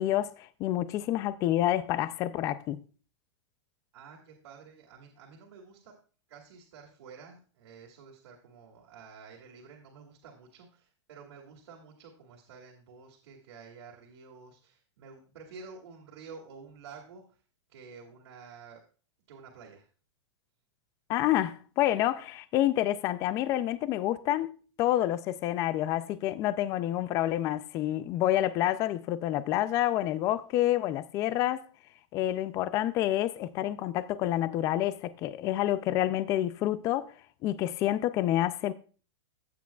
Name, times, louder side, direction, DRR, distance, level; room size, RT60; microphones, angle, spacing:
voice 1, 0.0-2.8 21.1-24.5 24.8-31.7 32.1-37.1 37.4-38.7, left 13 dB, 20° left, 0.3 m, -28 dB
voice 2, 3.9-5.9 6.3-17.4 17.7-18.8 19.3-19.9, right 5 dB, 75° right, 2.3 m, -50 dB
15.5 x 8.5 x 2.3 m
supercardioid pair, 160°, 15 cm